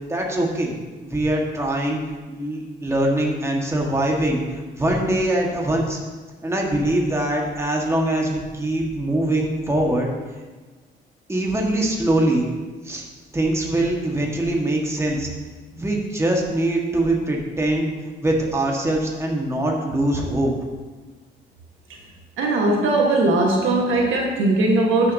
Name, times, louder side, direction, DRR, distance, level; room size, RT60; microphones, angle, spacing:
voice 1, 0.1-0.7 1.0-2.0 2.3-4.4 4.7-6.0 6.4-10.1 11.3-12.5 12.8-13.1 13.3-15.3 15.7-17.9 18.2-20.5, right 1 dB, 15° right, -1 dB, 1.6 m, -22 dB
voice 2, 22.4-25.1, right 2 dB, 80° right, 0 dB, 1.5 m, -19 dB
12.5 x 6.2 x 2.8 m, 1.3 s
cardioid pair, 90°, 20 cm